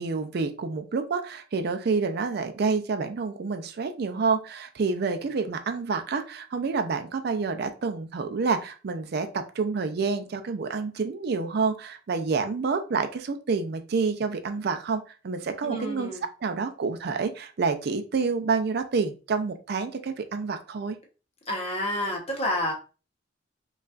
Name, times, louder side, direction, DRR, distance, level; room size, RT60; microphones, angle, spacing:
voice 1, 0.0-16.1 16.4-21.0, right 4 dB, 55° right, 8 dB, 0.4 m, -28 dB
voice 2, 15.6-16.2 21.5-22.7, left 1 dB, 30° left, 0 dB, 0.9 m, -29 dB
5.4 x 2.4 x 2.4 m, 0.34 s
head